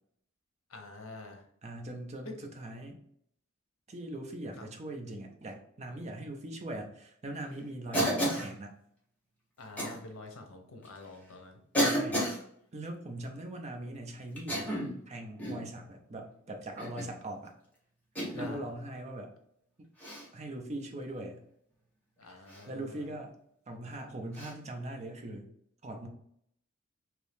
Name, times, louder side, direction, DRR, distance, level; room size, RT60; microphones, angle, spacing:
voice 1, 0.7-1.4 2.2-2.3 4.6-4.7 9.6-11.6 18.4-18.7 22.2-23.1, left 2 dB, 80° left, 4 dB, 0.7 m, -46 dB
voice 2, 1.6-3.0 3.9-8.7 11.7-12.3 12.7-14.7 15.1-17.5 18.3-19.3 20.3-21.4 22.3-23.3 23.7-25.5 25.8-26.1, right 1 dB, 35° right, 3 dB, 0.5 m, -41 dB
Cough, 7.9-8.5 9.8-10.0 10.9-11.0 11.7-12.4 14.4-15.0 15.4-15.7 16.8-17.1 18.2-18.5 20.0-20.3 22.5-22.6 24.3-24.5, equal, 5° left, 0.9 m, -31 dB
2.9 x 2.7 x 3.4 m, 0.68 s
head